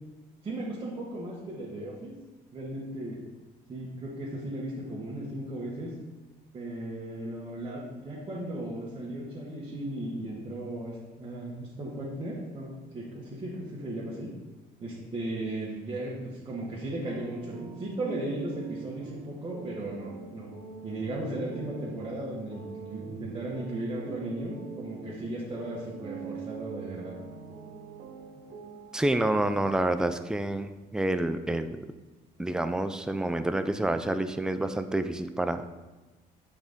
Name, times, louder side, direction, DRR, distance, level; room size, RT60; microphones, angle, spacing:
voice 1, 0.4-2.1 2.5-3.2 3.7-5.9 6.5-14.3 14.8-20.5 20.8-27.1, right 1 dB, 30° right, -7 dB, 1.3 m, -36 dB
sound 1, 17.0-29.2, right 6 dB, 50° right, 0.9 m, -43 dB
voice 2, 28.9-31.8 32.4-35.7, right 1 dB, 5° right, 9 dB, 0.3 m, -28 dB
7.2 x 3.9 x 3.6 m, 1.1 s
cardioid pair, 110°, 17 cm